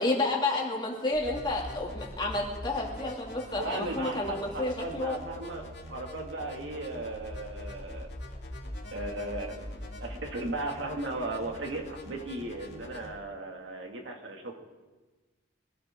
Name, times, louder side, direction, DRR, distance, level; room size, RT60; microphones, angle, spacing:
voice 1, 0.0-5.2, left 2 dB, 25° left, -2 dB, 2.6 m, -30 dB
sound 1, 1.1-13.1, left 1 dB, 65° left, 2.6 m, -43 dB
voice 2, 3.6-8.1 8.9-14.6, right 2 dB, 90° right, 2 dB, 2.3 m, -36 dB
24.0 x 13.5 x 3.8 m, 1.2 s
head